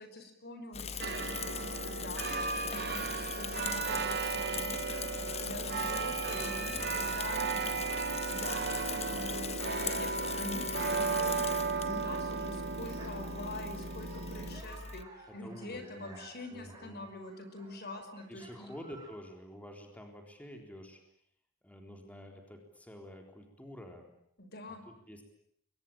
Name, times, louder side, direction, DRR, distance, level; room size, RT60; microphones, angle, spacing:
voice 1, 0.0-10.1 10.4-11.5 11.8-18.7 24.4-24.8, left 2 dB, 55° left, 8 dB, 5.5 m, -45 dB
Bicycle / Mechanisms, 0.7-15.0, left 6 dB, 35° left, 1.1 m, -40 dB
sound 1, 1.0-14.6, right 5 dB, 55° right, 2.0 m, -35 dB
sound 2, 1.7-12.7 13.0-19.1, right 2 dB, 20° right, 7.6 m, -57 dB
voice 2, 6.6-7.1 15.3-17.1 17.9-18.0 18.3-21.0 21.6-24.1 24.7-25.2, equal, 10° left, 3 dB, 3.9 m, -49 dB
29.0 x 23.0 x 8.9 m, 0.70 s
head